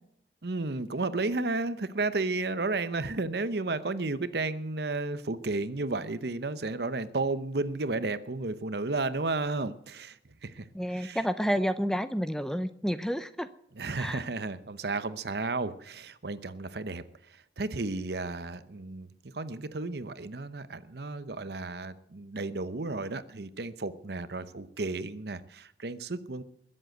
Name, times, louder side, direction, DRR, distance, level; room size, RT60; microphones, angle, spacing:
voice 1, 0.4-11.2 13.7-26.4, right 3 dB, 65° right, 13 dB, 0.8 m, -33 dB
voice 2, 10.7-13.5 14.0-14.2, equal, 5° left, 11 dB, 0.5 m, -30 dB
21.0 x 7.7 x 7.8 m, 0.70 s
head